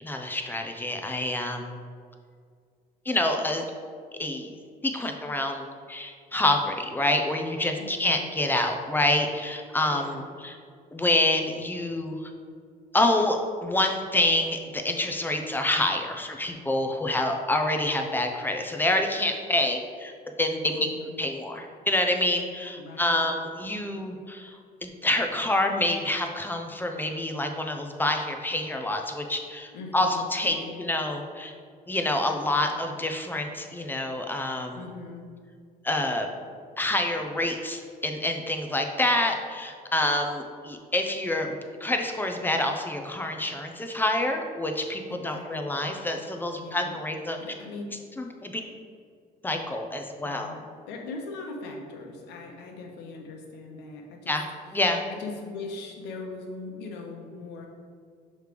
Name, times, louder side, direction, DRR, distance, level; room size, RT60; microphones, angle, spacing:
voice 1, 0.0-1.7 3.1-3.7 4.2-4.5 4.8-10.6 10.9-12.2 12.9-20.1 20.4-20.9 21.2-31.5 31.9-34.8 35.8-36.3 36.8-41.6 41.8-47.4 48.2-48.5 49.4-50.6 54.3-54.4 54.7-55.0, left 1 dB, 10° left, 4 dB, 0.6 m, -27 dB
voice 2, 7.8-8.3 9.9-10.3 20.7-21.2 22.8-23.3 23.6-23.9 29.7-30.9 32.4-32.9 34.7-35.3 45.1-45.8 46.6-47.1 47.4-47.9 50.2-54.3 55.1-57.7, left 3 dB, 85° left, 1 dB, 1.0 m, -41 dB
6.4 x 3.2 x 5.1 m, 2.1 s
cardioid pair, 110°, 17 cm